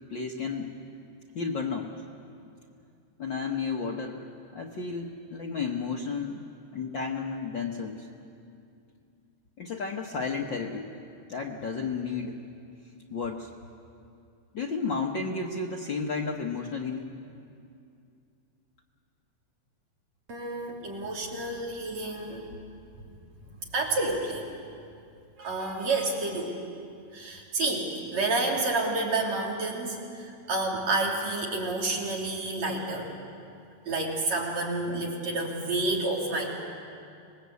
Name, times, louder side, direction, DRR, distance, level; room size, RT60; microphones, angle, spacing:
voice 1, 0.1-0.7 1.3-2.0 3.2-6.4 6.7-8.1 9.6-10.9 11.3-12.4 13.1-13.5 14.5-17.1, left 4 dB, 55° left, 0 dB, 1.5 m, -32 dB
voice 2, 20.3-22.5 23.7-24.5 25.4-26.6 27.1-33.1 33.9-36.5, right 2 dB, 65° right, -2 dB, 4.4 m, -29 dB
26.0 x 20.5 x 8.3 m, 2.5 s
omnidirectional pair, 3.3 m